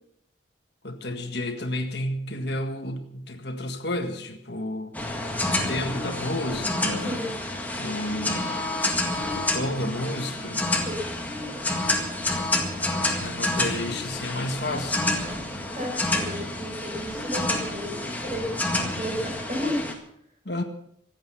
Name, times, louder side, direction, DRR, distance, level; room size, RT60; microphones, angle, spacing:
voice 1, 0.8-5.0 5.5-7.3 7.8-8.5 9.3-10.6 13.2-15.0 20.4-20.6, left 1 dB, 60° left, 6 dB, 1.7 m, -31 dB
sound 1, 4.9-19.9, left 2 dB, 10° left, 1.9 m, -28 dB
voice 2, 15.7-18.5 19.0-19.8, equal, 35° right, 0 dB, 5.9 m, -32 dB
25.0 x 8.6 x 5.8 m, 0.70 s
head